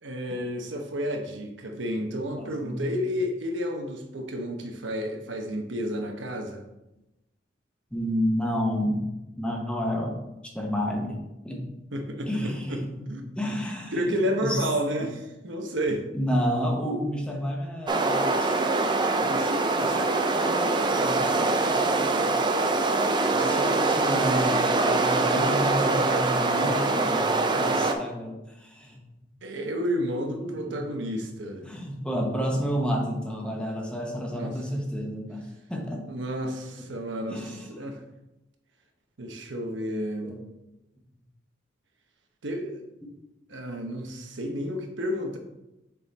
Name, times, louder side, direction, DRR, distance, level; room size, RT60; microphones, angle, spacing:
voice 1, 0.0-6.6 11.9-12.8 13.1-13.3 13.9-16.1 19.2-21.3 29.4-31.7 34.3-34.6 36.0-37.4 37.8-38.0 39.2-40.3 42.4-42.8 43.5-45.4, equal, 75° right, 4 dB, 0.9 m, -31 dB
voice 2, 2.4-3.0 7.9-9.1 9.4-10.2 10.4-11.7 12.3-14.6 16.1-18.9 20.9-22.8 23.3-29.0 30.4-31.0 31.6-36.1 37.3-37.7 40.2-40.4, equal, 5° left, 0 dB, 0.9 m, -31 dB
sound 1, 17.9-27.9, right 3 dB, 25° right, 0.5 m, -24 dB
6.7 x 3.7 x 4.1 m, 0.94 s
head